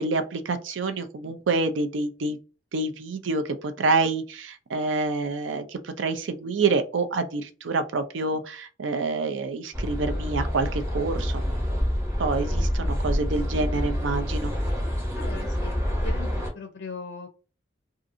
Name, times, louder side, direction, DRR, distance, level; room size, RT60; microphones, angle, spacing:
voice 1, 0.0-2.4 2.7-11.6 12.2-14.5, right 3 dB, 85° right, 0.5 m, -27 dB
sound 1, 9.7-16.5, equal, 15° right, 0.7 m, -27 dB
voice 2, 15.1-15.8 16.0-17.3, left 4 dB, 65° left, 0.4 m, -39 dB
2.6 x 2.5 x 2.5 m
head